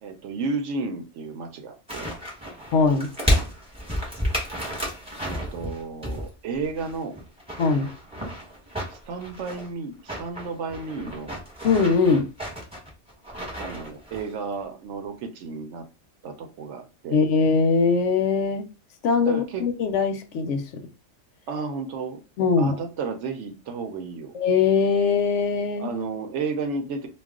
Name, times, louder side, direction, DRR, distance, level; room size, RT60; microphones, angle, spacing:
voice 1, 0.0-2.1 5.2-7.2 8.9-11.4 13.6-15.9 16.2-17.2 19.3-19.7 21.5-22.2 22.6-24.4 25.8-27.1, right 4 dB, 75° right, 0.9 m, -32 dB
sound 1, 1.9-6.3 6.6-9.7 10.0-14.3 14.6-14.7, equal, 5° right, 1.0 m, -31 dB
voice 2, 2.7-3.1 7.6-7.9 11.6-12.3 17.1-18.7 19.0-20.6 22.4-22.7 24.3-25.9, left 5 dB, 75° left, 0.9 m, -21 dB
2.3 x 2.3 x 3.5 m
omnidirectional pair, 1.3 m